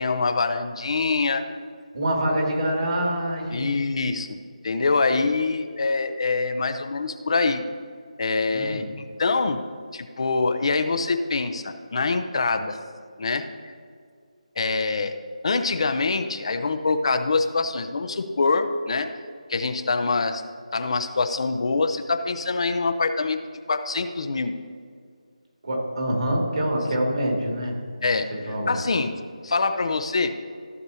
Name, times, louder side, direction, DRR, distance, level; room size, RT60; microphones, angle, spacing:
voice 1, 0.0-1.4 3.5-4.3 4.6-7.6 8.2-8.9 9.2-9.6 9.9-12.8 13.2-13.7 14.6-15.2 15.4-19.1 19.5-20.4 20.7-23.4 23.7-24.5 28.0-29.1 29.4-30.3, left 3 dB, 50° left, 8 dB, 0.6 m, -24 dB
voice 2, 1.9-3.7 8.5-8.9 25.6-27.8 28.5-28.8, right 1 dB, 55° right, -1 dB, 2.4 m, -25 dB
14.5 x 6.6 x 2.8 m, 2.1 s
figure-of-eight pair, 160°, 4 cm